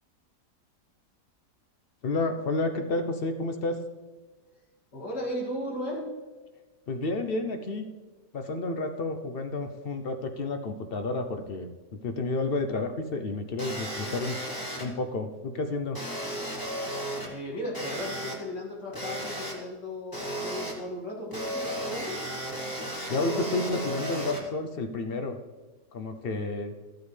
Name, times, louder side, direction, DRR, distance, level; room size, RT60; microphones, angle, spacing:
voice 1, 2.0-3.8 6.9-7.9 8.3-14.4 14.8-16.0 23.1-25.4 25.9-26.7, left 2 dB, 55° left, 7 dB, 0.6 m, -30 dB
voice 2, 4.9-6.0 17.3-22.2, left 1 dB, 90° left, -3 dB, 3.0 m, -36 dB
sound 1, 13.6-14.9 15.9-17.3 17.7-18.3 18.9-19.5 20.1-20.7 21.3-24.4, right 1 dB, 15° left, 1.6 m, -34 dB
14.0 x 8.2 x 3.3 m, 1.3 s
omnidirectional pair, 1.8 m